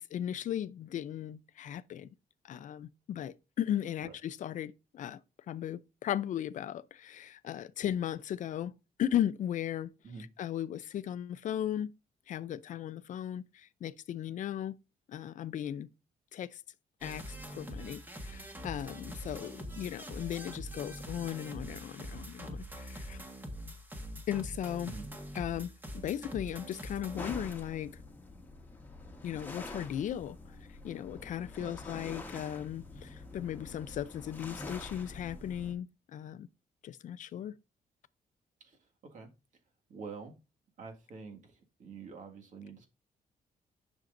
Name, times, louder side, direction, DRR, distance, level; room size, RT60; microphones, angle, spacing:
voice 1, 0.0-2.1 2.4-5.2 5.5-8.7 9.0-9.9 10.4-11.9 12.3-14.8 15.1-15.9 16.3-16.6 17.0-23.2 24.3-24.9 25.3-25.7 26.0-28.0 29.2-30.4 30.8-36.5 36.8-37.6, left 10 dB, 55° left, 0.5 m, -36 dB
sound 1, 17.0-27.5, equal, 10° right, 1.4 m, -44 dB
sound 2, 27.2-35.7, left 2 dB, 10° left, 1.4 m, -46 dB
voice 2, 39.9-40.3 40.8-42.9, right 5 dB, 55° right, 1.9 m, -46 dB
10.5 x 6.3 x 2.6 m
cardioid pair, 155°, 15 cm